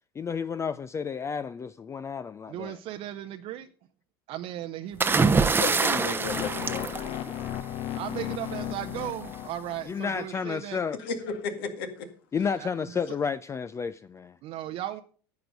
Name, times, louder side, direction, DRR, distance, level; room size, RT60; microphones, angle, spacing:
voice 1, 0.2-2.8 9.9-11.0 12.3-14.3, left 6 dB, 25° left, 0.4 m, -31 dB
voice 2, 2.5-3.7 4.3-5.3 7.9-10.8 12.5-12.7 14.4-15.0, right 12 dB, 55° right, 0.7 m, -36 dB
sound 1, 5.0-7.8 9.0-9.3, right 4 dB, 15° right, 0.7 m, -25 dB
voice 3, 5.4-6.9 11.0-12.1, left 4 dB, 75° left, 2.1 m, -33 dB
sound 2, 6.1-10.2, left 12 dB, 50° left, 0.9 m, -35 dB
10.5 x 7.9 x 5.2 m
hypercardioid pair, 85°, 12 cm